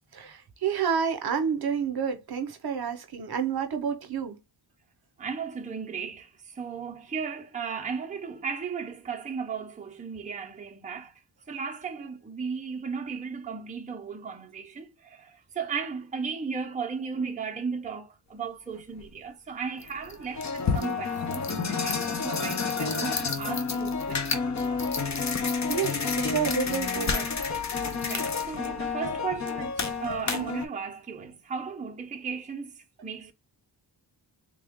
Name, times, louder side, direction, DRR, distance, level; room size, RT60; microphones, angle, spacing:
voice 1, 0.1-4.4 25.7-27.3, right 7 dB, 60° right, 0.8 m, -29 dB
voice 2, 5.2-11.1 11.5-25.2 28.0-33.3, right 6 dB, 15° right, 0.6 m, -36 dB
sound 1, 19.0-19.1 19.8-30.7, left 5 dB, 40° left, 0.7 m, -29 dB
3.5 x 2.2 x 3.5 m
wide cardioid pair, 135°, 43 cm